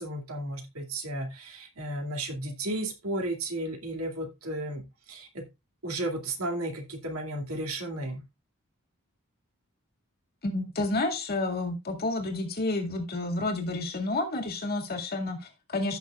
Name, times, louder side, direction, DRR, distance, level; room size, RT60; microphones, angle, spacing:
voice 1, 0.0-4.8 5.1-5.4 5.8-8.2, right 1 dB, 75° right, 2.4 m, -34 dB
voice 2, 10.4-16.0, left 2 dB, 45° left, 2.1 m, -30 dB
15.5 x 6.5 x 2.4 m
head